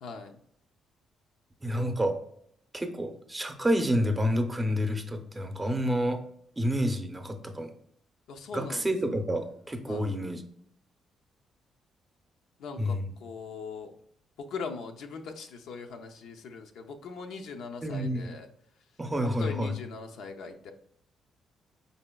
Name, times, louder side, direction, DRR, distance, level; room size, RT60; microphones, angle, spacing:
voice 1, 0.0-0.3 8.3-8.9 9.9-10.1 12.6-13.9 14.4-18.5 19.2-20.7, left 4 dB, 85° left, 4 dB, 0.5 m, -40 dB
voice 2, 1.6-2.2 2.7-6.2 6.6-7.7 8.5-10.4 12.8-13.1 17.8-18.3 19.0-19.7, equal, 15° right, 6 dB, 0.6 m, -29 dB
4.8 x 4.0 x 2.2 m, 0.69 s
cardioid pair, 100°, 0 cm